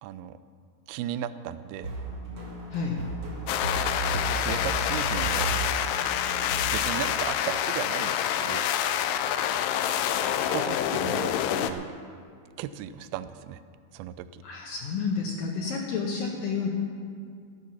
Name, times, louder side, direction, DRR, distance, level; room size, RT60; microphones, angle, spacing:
voice 1, 0.0-0.4 0.9-1.9 4.1-5.5 6.7-8.7 10.5-12.0 12.6-13.6 13.9-14.4, right 10 dB, 80° right, 13 dB, 2.3 m, -36 dB
sound 1, 1.8-6.8, right 3 dB, 45° right, 3.2 m, -34 dB
sound 2, 3.5-11.7, left 10 dB, 85° left, 2.0 m, -27 dB
voice 2, 14.4-16.7, left 5 dB, 70° left, -2 dB, 2.5 m, -30 dB
13.5 x 12.5 x 5.8 m, 2.2 s
omnidirectional pair, 4.7 m